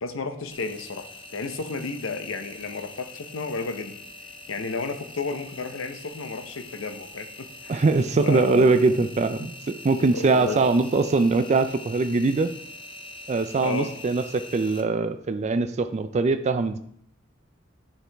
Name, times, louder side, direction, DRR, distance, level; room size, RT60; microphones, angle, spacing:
voice 1, 0.0-1.1 1.3-4.0 4.5-7.8 8.2-9.0 9.4-9.5 10.1-10.6 13.6-13.9, left 4 dB, 90° left, 7 dB, 0.8 m, -32 dB
Engine, 0.5-14.8, left 2 dB, 25° left, 0.7 m, -43 dB
voice 2, 7.7-12.5 13.3-16.8, right 3 dB, 35° right, 9 dB, 0.4 m, -22 dB
10.0 x 4.7 x 3.4 m, 0.67 s
head